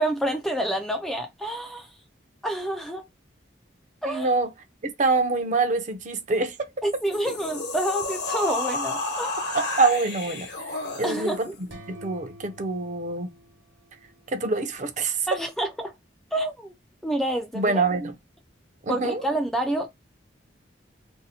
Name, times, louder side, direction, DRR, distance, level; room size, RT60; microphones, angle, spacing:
voice 1, 0.0-1.9 2.4-3.1 4.0-4.3 6.8-9.3 11.0-11.5 15.3-15.9 16.3-16.7 17.0-17.8 18.9-19.9, right 1 dB, ahead, 0.4 m, -28 dB
voice 2, 4.0-4.5 4.8-6.6 9.5-10.5 11.0-11.5 11.9-13.3 14.3-15.3 17.5-18.1 18.8-19.2, right 3 dB, 40° right, 0.6 m, -25 dB
sound 1, 6.9-11.5, left 3 dB, 65° left, 1.1 m, -31 dB
sound 2, 11.7-14.5, equal, 70° right, 1.1 m, -48 dB
2.7 x 2.1 x 4.0 m
head